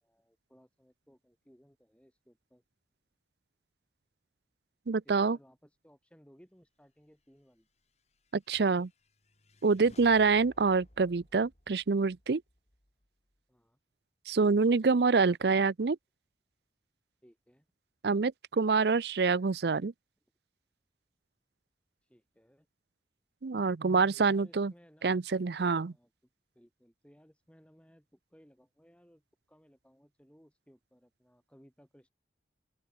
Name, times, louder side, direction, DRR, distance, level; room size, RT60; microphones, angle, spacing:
voice 1, 0.0-2.6 5.0-7.7 13.5-13.8 17.2-17.7 22.0-22.7 24.1-25.2 25.8-26.1 26.5-29.2 29.5-32.1, equal, 5° left, 4.1 m, -62 dB
voice 2, 4.9-5.4 8.3-8.9 9.6-12.4 14.3-16.0 18.0-19.9 23.4-24.7 25.0-25.9, right 4 dB, 70° right, 0.6 m, -26 dB
sound 1, 7.8-13.4, left 1 dB, 40° left, 3.4 m, -61 dB
open air
head